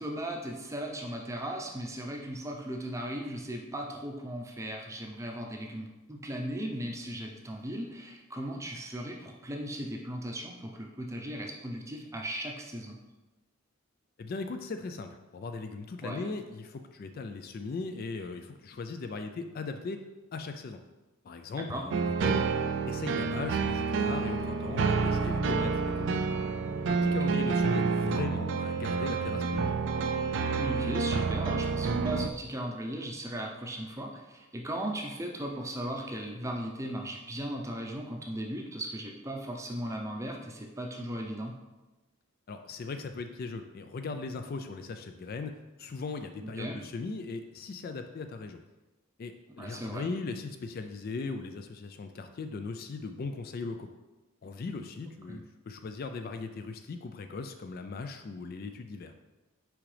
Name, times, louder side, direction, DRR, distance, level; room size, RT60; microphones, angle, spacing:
voice 1, 0.0-13.0 16.0-16.3 21.7-21.8 27.2-27.3 30.6-41.5 46.4-46.8 49.6-50.0 55.3-55.4, right 1 dB, 15° right, 1 dB, 0.6 m, -37 dB
voice 2, 14.2-20.0 20.3-20.8 21.2-22.5 22.9-26.2 26.9-29.6 42.5-48.6 49.2-53.9 54.4-59.1, left 4 dB, 45° left, 7 dB, 0.3 m, -38 dB
sound 1, 21.9-32.3, right 4 dB, 55° right, 0.3 m, -29 dB
6.1 x 4.9 x 3.3 m, 1.1 s
head